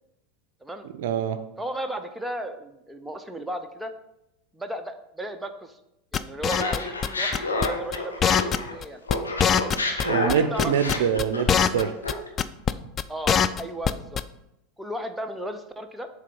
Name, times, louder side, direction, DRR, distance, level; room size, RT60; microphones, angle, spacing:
voice 1, 1.0-1.4 10.0-11.9, right 8 dB, 65° right, 10 dB, 0.5 m, -25 dB
voice 2, 1.6-3.9 4.5-5.8 6.1-9.0 9.6-9.7 10.0-11.0 13.1-14.2 14.8-16.1, equal, 5° right, 6 dB, 0.7 m, -35 dB
sound 1, 6.1-7.1 7.3-7.7 7.9-8.0 8.2-8.8 9.1-9.2 9.4-10.3 10.6-11.8 12.1-12.2 12.4-12.7 13.0-13.9 14.2-14.3, left 8 dB, 30° left, 0.3 m, -22 dB
Laughter, 6.5-8.8 9.1-12.3, left 2 dB, 90° left, 0.9 m, -29 dB
7.5 x 3.5 x 5.3 m, 0.86 s
hypercardioid pair, 85°, 0 cm